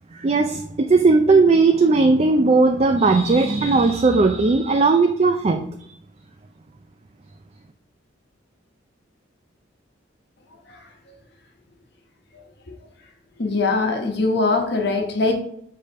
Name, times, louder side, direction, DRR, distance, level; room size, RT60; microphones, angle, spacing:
voice 1, 0.1-5.7, right 3 dB, 30° right, 6 dB, 0.4 m, -17 dB
voice 2, 13.4-15.3, left 3 dB, 60° left, 3 dB, 1.2 m, -21 dB
5.3 x 3.4 x 5.6 m, 0.70 s
head